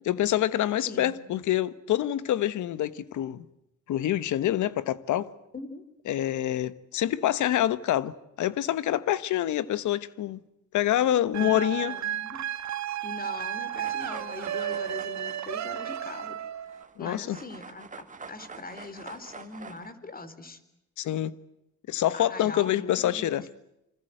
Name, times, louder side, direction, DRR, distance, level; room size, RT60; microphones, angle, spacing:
voice 1, 0.0-3.4 3.9-5.3 6.1-10.4 10.7-11.9 17.0-17.4 21.0-21.3 21.9-23.4, left 12 dB, 80° left, 1.3 m, -26 dB
voice 2, 0.8-1.2 5.5-5.8 11.4-12.4 13.0-16.4 17.0-20.6 22.1-23.4, left 3 dB, 30° left, 3.7 m, -41 dB
sound 1, 11.3-16.8, right 10 dB, 65° right, 1.9 m, -33 dB
sound 2, 13.8-17.0 17.3-19.9, right 4 dB, 25° right, 2.2 m, -46 dB
27.0 x 25.5 x 7.9 m
cardioid pair, 90°, 30 cm